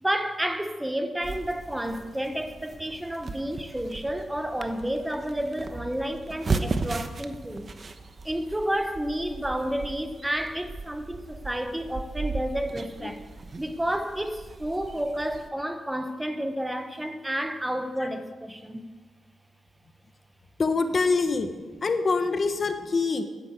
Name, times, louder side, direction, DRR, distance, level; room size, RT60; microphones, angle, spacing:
voice 1, 0.0-7.7 8.2-13.2 13.6-18.8, right 1 dB, 10° right, 1.0 m, -30 dB
sound 1, 1.2-15.5, right 3 dB, 40° right, 1.0 m, -37 dB
voice 2, 20.6-21.5 21.8-23.3, left 4 dB, 40° left, 1.2 m, -25 dB
11.0 x 10.5 x 8.2 m
cardioid pair, 100°, 0 cm